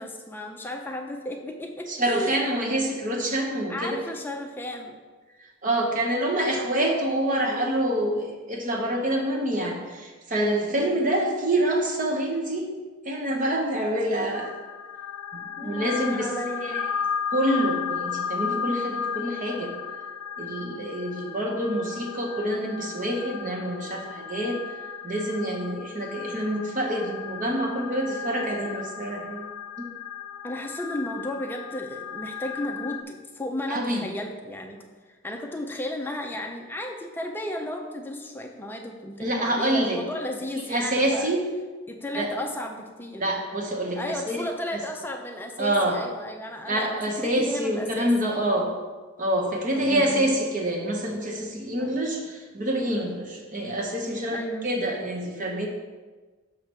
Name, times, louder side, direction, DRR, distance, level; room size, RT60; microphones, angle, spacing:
voice 1, 0.0-2.4 3.7-5.0 10.7-10.9 15.6-16.8 30.4-34.8 35.1-41.3 41.9-43.2 44.0-46.9 47.2-48.1 48.5-48.7 49.7-50.3 51.8-52.0 54.3-54.7, left 1 dB, 10° left, 2 dB, 0.5 m, -34 dB
voice 2, 1.9-4.0 5.6-12.7 13.0-14.5 15.3-16.3 16.6-16.7 17.3-19.7 20.4-24.6 25.0-29.5 29.8-29.9 33.7-34.1 39.2-40.0 40.7-41.4 42.2-42.3 43.2-44.4 45.6-46.0 46.6-48.7 49.2-55.7, right 1 dB, 35° right, 1 dB, 0.9 m, -26 dB
sound 1, 14.3-33.0, left 7 dB, 80° left, 0.3 m, -35 dB
7.0 x 3.3 x 5.9 m, 1.4 s
head